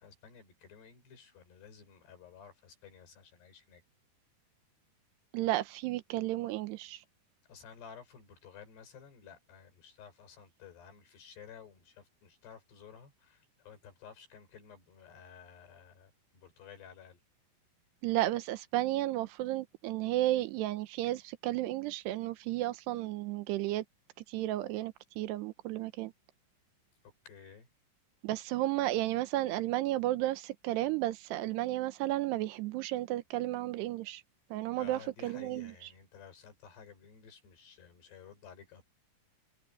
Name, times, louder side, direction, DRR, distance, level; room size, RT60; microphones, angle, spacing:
voice 1, 0.0-3.8 7.5-17.2 27.0-27.7 34.8-38.8, left 7 dB, 85° left, 7.1 m, -54 dB
voice 2, 5.3-7.0 18.0-23.8 24.3-26.1 28.2-34.2 34.5-35.7, right 15 dB, 90° right, 3.1 m, -33 dB
omnidirectional pair, 4.7 m